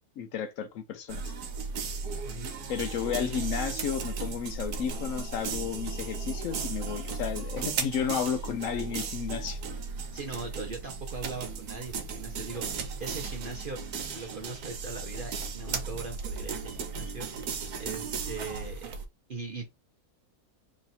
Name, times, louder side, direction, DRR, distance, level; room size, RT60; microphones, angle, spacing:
voice 1, 0.2-1.3 2.7-9.6, left 8 dB, 70° left, 0.9 m, -33 dB
sound 1, 1.1-19.1, right 5 dB, 85° right, 1.3 m, -36 dB
voice 2, 10.1-13.8 14.1-17.3 17.8-18.9 19.3-19.7, right 4 dB, 50° right, 0.7 m, -40 dB
3.1 x 2.7 x 4.1 m
omnidirectional pair, 1.6 m